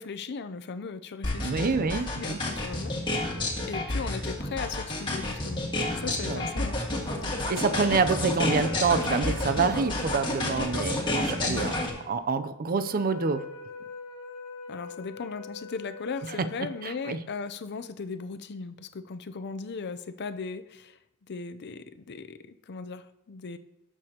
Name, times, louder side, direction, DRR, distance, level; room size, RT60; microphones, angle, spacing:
voice 1, 0.0-7.3 11.5-11.8 14.7-21.0 21.3-23.6, left 4 dB, 50° left, 11 dB, 0.5 m, -38 dB
sound 1, 1.2-11.9, left 1 dB, 20° left, 1.7 m, -29 dB
voice 2, 1.4-2.4 6.3-6.4 7.5-11.8 12.1-13.5 16.4-17.2, right 4 dB, 40° right, 12 dB, 0.5 m, -27 dB
sound 2, 7.1-17.5, left 4 dB, 80° left, 1.4 m, -44 dB
18.0 x 6.8 x 2.9 m, 0.91 s
head